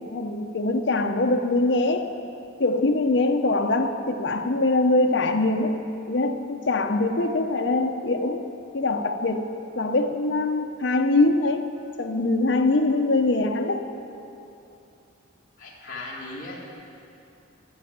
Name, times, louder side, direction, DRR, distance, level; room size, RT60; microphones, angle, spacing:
voice 1, 0.1-2.1 2.6-8.5 8.7-11.6 12.0-13.8, left 2 dB, 60° left, 4 dB, 0.8 m, -23 dB
voice 2, 15.6-16.6, left 2 dB, 40° left, -7 dB, 2.1 m, -37 dB
13.0 x 6.8 x 8.7 m, 2.7 s
head